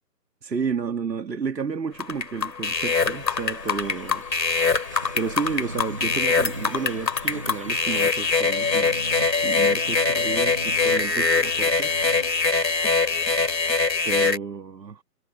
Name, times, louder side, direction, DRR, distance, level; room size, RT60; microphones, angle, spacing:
voice 1, 0.4-4.2 5.1-9.0 9.4-12.0 14.1-15.0, right 5 dB, 80° right, 2.1 m, -31 dB
sound 1, 2.0-14.4, left 4 dB, 90° left, 2.8 m, -23 dB
sound 2, 2.9-13.6, right 2 dB, 20° right, 0.8 m, -40 dB
hypercardioid pair, 165°, 49 cm